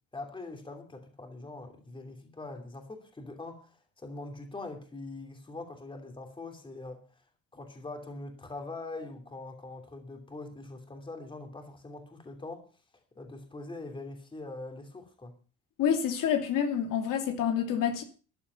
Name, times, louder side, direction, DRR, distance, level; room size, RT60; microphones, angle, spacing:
voice 1, 0.1-3.7 4.0-7.0 7.5-12.7 13.2-15.3, left 2 dB, 15° left, 2.9 m, -43 dB
voice 2, 15.8-18.0, left 8 dB, 70° left, 2.6 m, -28 dB
13.5 x 11.5 x 5.4 m
cardioid pair, 145°, 34 cm